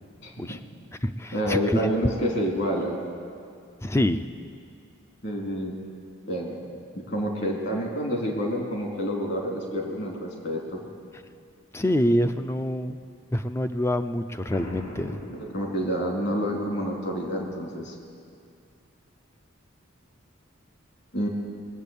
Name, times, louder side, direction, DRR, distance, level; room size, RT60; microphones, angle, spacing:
voice 1, 0.2-0.6 1.3-3.0 5.2-5.7 6.3-10.8 15.3-17.9 21.1-21.3, equal, 55° left, 0 dB, 2.6 m, -28 dB
voice 2, 1.0-1.9 3.8-4.2 11.7-13.0 13.3-15.2, left 1 dB, 15° left, 10 dB, 0.3 m, -26 dB
Boom, 14.5-16.3, left 1 dB, 85° left, 2.8 m, -41 dB
20.5 x 8.2 x 6.9 m, 2.3 s
head